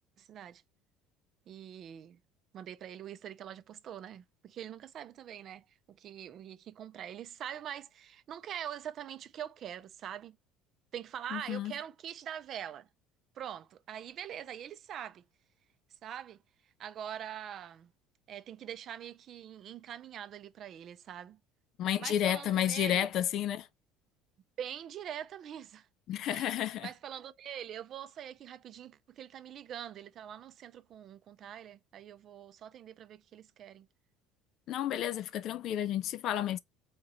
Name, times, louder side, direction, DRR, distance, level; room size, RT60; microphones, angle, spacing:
voice 1, 0.2-0.6 1.5-2.2 2.5-10.4 10.9-12.9 13.3-15.2 16.0-16.4 16.8-17.9 18.3-21.4 22.0-23.1 24.6-25.9 26.3-33.9, right 10 dB, 50° right, 0.5 m, -44 dB
voice 2, 11.3-11.7 21.8-23.7 26.1-26.9 34.7-36.6, left 11 dB, 60° left, 0.4 m, -31 dB
3.7 x 2.9 x 4.1 m
supercardioid pair, 100°, 0 cm